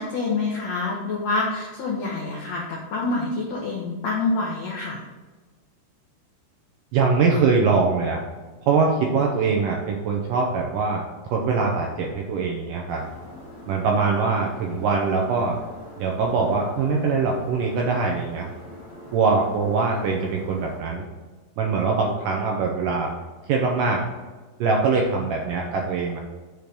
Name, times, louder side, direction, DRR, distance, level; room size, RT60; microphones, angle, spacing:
voice 1, 0.0-5.0, left 3 dB, 80° left, -3 dB, 1.5 m, -27 dB
voice 2, 6.9-8.2 8.6-13.0 13.7-15.6 16.0-18.5 19.1-21.1 21.6-23.1 23.5-24.0 24.6-26.2, right 4 dB, 80° right, 0 dB, 2.0 m, -23 dB
sound 1, 12.9-20.8, left 1 dB, 45° left, 2.7 m, -43 dB
6.9 x 4.6 x 5.2 m, 1.3 s
omnidirectional pair, 4.7 m